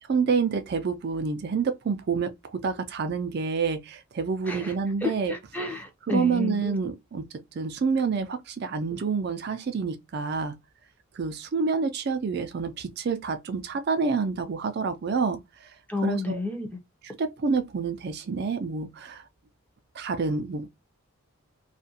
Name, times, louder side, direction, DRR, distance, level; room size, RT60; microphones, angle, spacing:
voice 1, 0.1-5.3 6.1-7.3 7.5-10.6 11.1-15.7 16.0-16.4 17.2-19.2 19.9-20.7, right 5 dB, 50° right, 0.4 m, -28 dB
voice 2, 5.0-6.8 15.9-16.8, left 3 dB, 10° left, 0.5 m, -30 dB
2.4 x 2.2 x 2.6 m
head